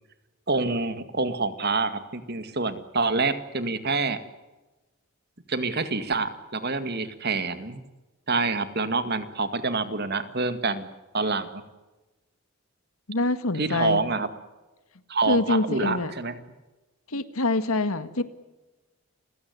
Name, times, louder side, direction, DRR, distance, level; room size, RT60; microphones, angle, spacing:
voice 1, 0.5-4.2 5.5-7.8 8.3-10.9 11.1-11.6 13.6-14.3 15.1-16.4, right 3 dB, 50° right, 11 dB, 2.0 m, -27 dB
voice 2, 13.1-14.0 15.3-16.1 17.1-18.2, left 2 dB, 80° left, 12 dB, 1.8 m, -25 dB
30.0 x 16.5 x 9.4 m, 1.1 s
head